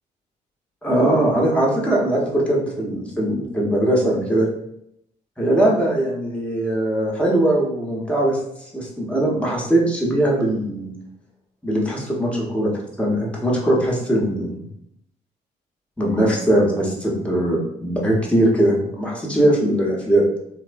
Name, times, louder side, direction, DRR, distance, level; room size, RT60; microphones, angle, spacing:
voice 1, 0.8-4.5 5.4-10.9 11.6-12.7 13.0-14.5 16.0-20.3, right 1 dB, 5° left, -3 dB, 0.9 m, -20 dB
2.9 x 2.0 x 2.6 m, 0.77 s
hypercardioid pair, 45°, 20 cm